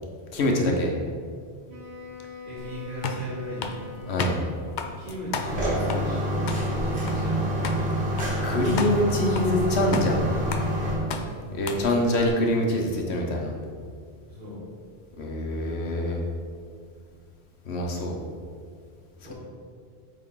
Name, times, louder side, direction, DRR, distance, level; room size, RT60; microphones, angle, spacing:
voice 1, 0.3-0.9 4.1-4.4 8.4-10.2 11.5-13.5 15.2-16.2 17.7-18.2, left 1 dB, 90° left, 1 dB, 1.2 m, -24 dB
Wind instrument woodwind instrument, 1.7-5.3, left 3 dB, 85° right, 1.4 m, -43 dB
voice 2, 2.5-3.8 5.0-7.6 11.0-11.3 14.3-14.7 19.2-19.3, equal, 50° right, -7 dB, 2.0 m, -37 dB
sound 1, 2.6-12.3, left 4 dB, 55° left, 0.6 m, -36 dB
sound 2, 5.4-10.9, equal, 70° right, 1.7 m, -27 dB
8.6 x 3.7 x 3.8 m, 2.1 s
omnidirectional pair, 1.1 m